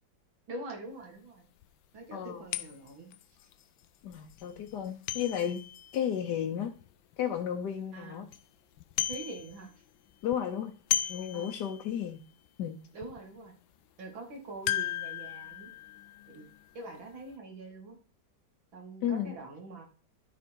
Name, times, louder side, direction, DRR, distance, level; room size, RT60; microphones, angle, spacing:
voice 1, 0.5-1.5 1.9-3.1 7.9-8.2 9.1-9.7 11.3-11.6 12.9-13.5 14.0-15.7 16.3-16.4 16.7-18.0 18.7-19.8, right 2 dB, 80° right, 1 dB, 3.1 m, -44 dB
sound 1, 1.0-1.1 1.6-1.7 2.5-7.2 7.7-7.8 8.1-8.4 8.7-9.8 10.1-12.1 12.5-12.6 13.0-13.2 14.7-17.1 17.3-17.4, left 11 dB, 85° left, 1.3 m, -36 dB
voice 2, 2.1-2.5 4.0-5.6 5.9-6.7 7.2-8.3 10.2-10.7 11.1-12.2 12.6-12.8 19.0-19.4, left 9 dB, 65° left, 3 dB, 1.3 m, -33 dB
12.0 x 4.7 x 4.6 m, 0.38 s
omnidirectional pair, 2.1 m